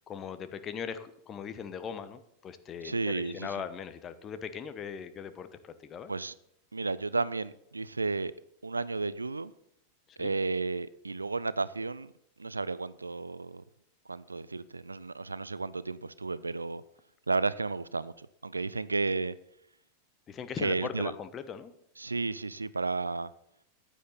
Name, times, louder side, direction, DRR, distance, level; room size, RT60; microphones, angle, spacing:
voice 1, 0.0-6.1 10.1-10.3 20.3-21.7, left 7 dB, 25° left, 1.1 m, -40 dB
voice 2, 2.8-3.5 6.1-6.3 6.7-8.3 8.6-9.5 10.2-12.1 12.4-13.6 14.1-16.8 17.3-19.3 20.6-21.1 22.0-23.3, right 3 dB, 80° right, 0.5 m, -32 dB
14.5 x 10.0 x 4.2 m
figure-of-eight pair, 90°, 0 cm